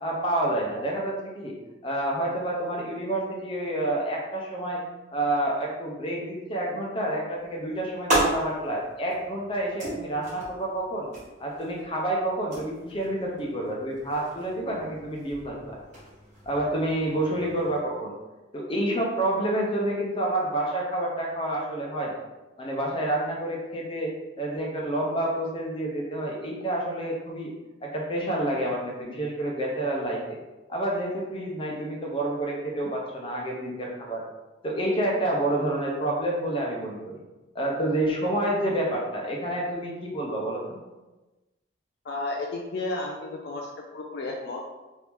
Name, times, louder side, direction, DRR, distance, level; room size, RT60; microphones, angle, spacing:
voice 1, 0.0-1.5 1.8-4.8 5.1-11.1 11.4-15.8 16.5-18.2 18.5-22.2 22.6-27.5 27.8-30.4 30.7-34.2 34.6-37.1 37.5-40.8, right 1 dB, 25° left, -2 dB, 0.7 m, -28 dB
sound 1, 7.4-17.8, right 1 dB, 40° right, 1.2 m, -35 dB
voice 2, 42.0-44.7, left 2 dB, 60° left, 0 dB, 0.4 m, -33 dB
3.0 x 2.7 x 3.5 m, 1.1 s
head